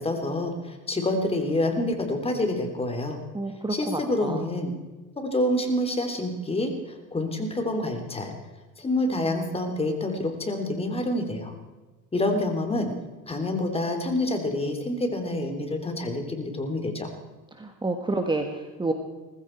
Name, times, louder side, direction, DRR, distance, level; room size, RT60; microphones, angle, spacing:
voice 1, 0.0-3.2 3.7-4.7 5.2-8.3 8.8-11.5 12.1-12.9 13.3-17.1, left 1 dB, 20° left, 5 dB, 3.2 m, -27 dB
voice 2, 3.3-4.4 17.5-18.9, right 2 dB, 15° right, 5 dB, 1.7 m, -29 dB
19.5 x 15.5 x 4.6 m, 1.2 s
supercardioid pair, 105°, 32 cm